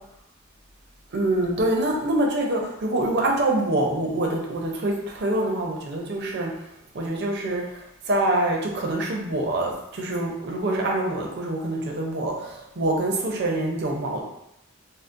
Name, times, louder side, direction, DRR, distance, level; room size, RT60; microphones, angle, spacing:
voice 1, 1.1-6.5 6.9-7.6 8.1-14.2, right 1 dB, 50° right, -1 dB, 0.5 m, -25 dB
3.7 x 2.0 x 2.5 m, 0.80 s
head